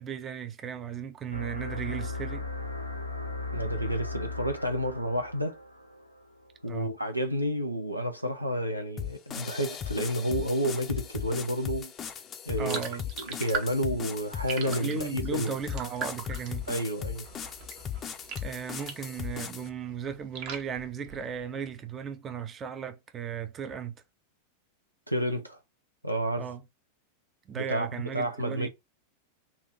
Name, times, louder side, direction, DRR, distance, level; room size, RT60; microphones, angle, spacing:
voice 1, 0.0-2.5 6.7-6.9 12.6-13.0 14.6-16.7 18.4-24.0 26.4-26.6 27.5-28.7, right 7 dB, 25° right, 0.6 m, -36 dB
sound 1, 1.3-6.5, left 3 dB, 85° left, 0.8 m, -37 dB
voice 2, 3.5-5.6 6.6-11.9 12.5-12.8 13.2-15.5 16.7-17.2 25.1-25.6 26.0-26.5 27.5-27.9 28.1-28.7, equal, 85° right, 0.7 m, -30 dB
sound 2, 9.0-19.7, left 9 dB, 25° left, 0.6 m, -38 dB
sound 3, 12.6-19.2 19.5-21.6, right 6 dB, 45° right, 1.0 m, -40 dB
4.3 x 2.5 x 3.8 m
figure-of-eight pair, 90°, 0 cm